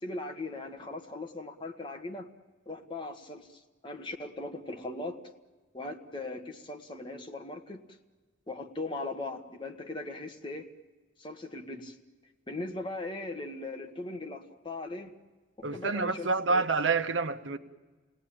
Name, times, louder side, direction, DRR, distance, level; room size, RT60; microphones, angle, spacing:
voice 1, 0.0-2.3 2.6-5.2 5.7-8.0 8.5-10.6 11.2-12.0 12.5-15.1 15.6-16.6, left 2 dB, 25° left, 1.5 m, -39 dB
voice 2, 15.6-17.6, right 4 dB, 90° right, 1.0 m, -28 dB
29.0 x 18.5 x 8.9 m
head